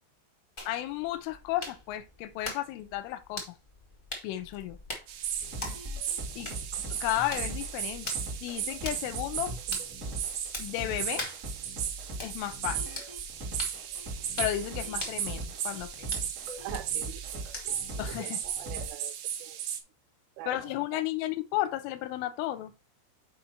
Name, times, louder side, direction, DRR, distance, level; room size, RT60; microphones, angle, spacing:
sound 1, 0.6-18.0, left 2 dB, 75° left, 0.4 m, -44 dB
voice 1, 0.7-3.6 4.2-4.8 6.4-8.1 8.4-9.5 10.6-11.3 12.2-13.0 14.4-16.1 18.0-18.5 20.5-22.7, left 14 dB, 90° left, 3.3 m, -33 dB
sound 2, 5.1-19.8, right 9 dB, 70° right, 2.7 m, -36 dB
sound 3, 5.4-18.9, right 1 dB, 40° right, 1.0 m, -41 dB
voice 2, 16.6-17.8 18.2-19.1 19.4-19.6 20.4-20.6 20.9-21.0, right 15 dB, 90° right, 3.3 m, -43 dB
7.3 x 5.1 x 4.4 m
omnidirectional pair, 5.5 m